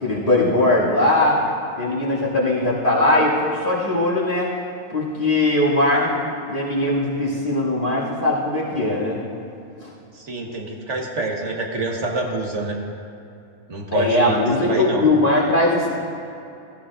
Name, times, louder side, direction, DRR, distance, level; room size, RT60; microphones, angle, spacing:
voice 1, 0.0-1.4 1.8-4.5 4.9-6.2 6.5-9.2 13.9-15.9, left 2 dB, 45° left, -6 dB, 2.8 m, -20 dB
voice 2, 10.1-12.8 13.7-15.0, right 2 dB, 80° right, 0 dB, 1.7 m, -27 dB
16.5 x 14.5 x 2.5 m, 2.8 s
omnidirectional pair, 1.2 m